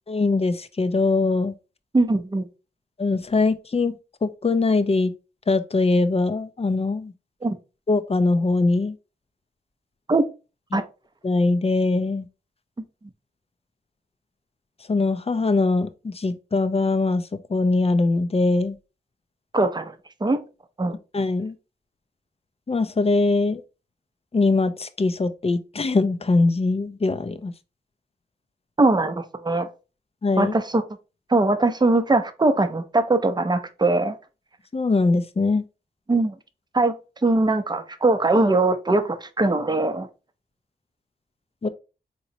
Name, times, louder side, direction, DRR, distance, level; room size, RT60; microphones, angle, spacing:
voice 1, 0.1-1.5 3.0-3.9 4.2-5.1 5.5-7.1 7.9-8.9 10.7-10.8 11.2-12.3 14.9-17.2 17.5-18.8 21.1-21.5 22.7-23.6 24.3-27.5 30.2-30.5 34.7-35.6 41.6-41.7, left 3 dB, 35° left, 0.5 m, -22 dB
voice 2, 1.9-2.4 7.4-7.6 10.1-10.2 10.7-10.8 19.5-19.9 20.2-20.4 20.8-20.9 28.8-29.7 30.4-30.8 31.3-34.1 36.1-36.3 36.7-36.9 37.2-40.1, right 2 dB, 25° right, 0.6 m, -21 dB
3.9 x 3.0 x 2.6 m
wide cardioid pair, 65°, 18 cm